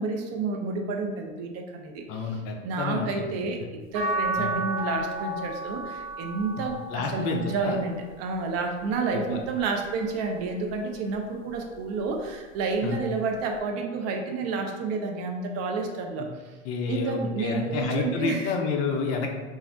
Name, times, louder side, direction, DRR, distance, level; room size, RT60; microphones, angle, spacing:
voice 1, 0.0-2.2 2.6-3.6 3.9-16.5 16.9-18.5, right 4 dB, 40° right, 3 dB, 0.5 m, -30 dB
voice 2, 2.1-3.4 4.4-4.5 6.9-7.8 9.1-9.4 12.8-13.0 16.2-16.3 16.6-19.3, left 4 dB, 35° left, 2 dB, 0.4 m, -29 dB
sound 1, 3.9-10.2 10.8-12.2 13.6-13.7, right 2 dB, 55° right, 1.2 m, -35 dB
2.5 x 2.0 x 3.7 m, 1.3 s
hypercardioid pair, 100°, 41 cm